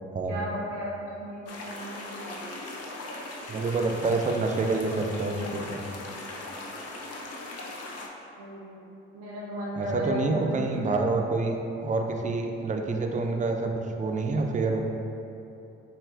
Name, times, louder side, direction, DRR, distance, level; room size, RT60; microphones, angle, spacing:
voice 1, 0.3-0.9 1.2-2.6 8.4-8.8 9.1-10.2 10.5-11.0, equal, 85° right, -6 dB, 0.7 m, -36 dB
sound 1, 1.5-8.1, left 2 dB, 55° left, 0.6 m, -39 dB
voice 2, 3.5-5.8 9.8-11.6 11.8-13.7 14.0-14.8, right 3 dB, 25° right, 3 dB, 0.5 m, -27 dB
6.4 x 2.4 x 2.4 m, 2.8 s
hypercardioid pair, 45°, 30 cm